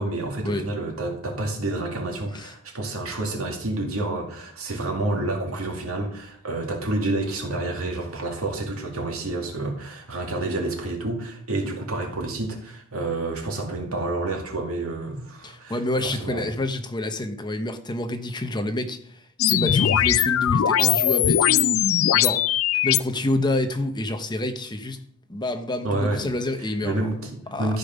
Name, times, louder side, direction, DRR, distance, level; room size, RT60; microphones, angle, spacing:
voice 1, 0.0-16.5 25.8-26.2 26.8-27.8, right 2 dB, 85° right, 2.4 m, -29 dB
voice 2, 15.4-22.4 22.8-25.0 25.3-27.1 27.5-27.8, left 1 dB, 20° left, 0.9 m, -28 dB
sound 1, 19.4-23.0, left 10 dB, 75° left, 0.4 m, -20 dB
13.5 x 5.2 x 5.3 m
head